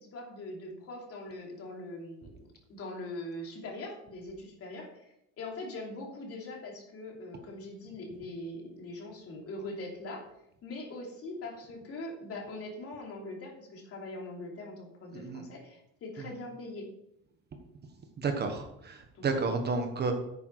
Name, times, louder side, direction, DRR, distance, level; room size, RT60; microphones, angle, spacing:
voice 1, 0.0-2.4 2.7-10.3 10.6-16.9 19.1-19.5, left 2 dB, 40° left, 0 dB, 3.0 m, -42 dB
voice 2, 15.1-15.4 18.2-20.1, right 4 dB, 30° right, 5 dB, 1.3 m, -31 dB
10.0 x 9.3 x 4.7 m, 0.80 s
cardioid pair, 150°, 35 cm